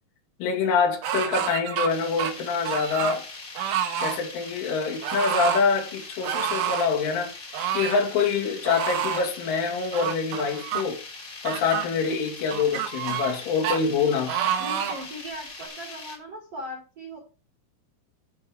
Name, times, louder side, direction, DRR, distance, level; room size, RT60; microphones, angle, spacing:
voice 1, 0.4-3.3 4.0-7.3 7.7-11.0 11.4-14.4, left 5 dB, 75° left, 5.0 m, -25 dB
sound 1, 1.0-1.9 2.2-3.2 3.6-4.2 5.0-5.6 6.2-6.9 7.5-8.1 8.7-9.3 9.9-10.8 11.5-11.9 12.5-13.4 13.6-13.8 14.3-15.1 15.6-15.7, right 9 dB, 75° right, 3.7 m, -28 dB
sound 2, 1.9-16.2, left 3 dB, 35° left, 2.1 m, -41 dB
voice 2, 14.6-17.2, equal, 45° right, 2.2 m, -39 dB
15.0 x 5.6 x 4.9 m
omnidirectional pair, 5.7 m